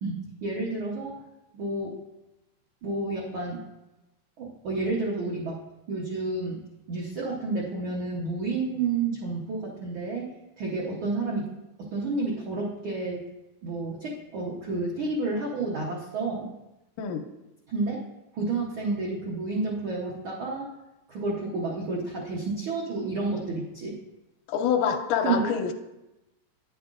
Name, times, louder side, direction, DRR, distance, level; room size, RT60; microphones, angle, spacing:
voice 1, 0.0-1.2 1.5-2.0 2.8-3.6 4.4-5.6 5.9-6.6 6.9-11.5 11.8-13.2 13.6-16.5 17.7-18.0 18.3-20.7 21.1-24.0 25.2-25.5, right 3 dB, 75° right, -3 dB, 1.1 m, -30 dB
voice 2, 24.5-25.7, left 7 dB, 85° left, 6 dB, 2.1 m, -26 dB
9.6 x 7.7 x 2.4 m, 0.97 s
omnidirectional pair, 3.6 m